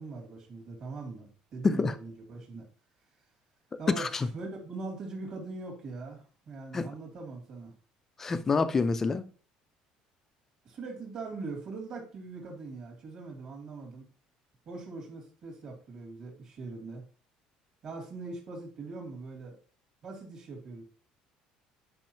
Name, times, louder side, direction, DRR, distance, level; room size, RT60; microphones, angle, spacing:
voice 1, 0.0-2.6 3.8-7.7 10.6-14.1 14.7-17.0 17.8-19.5 20.0-20.8, right 3 dB, 35° right, 2.6 m, -41 dB
voice 2, 1.6-1.9 3.9-4.3 6.7-6.9 8.2-9.3, left 4 dB, 15° left, 0.5 m, -27 dB
10.5 x 5.4 x 2.9 m
cardioid pair, 175°, 2 cm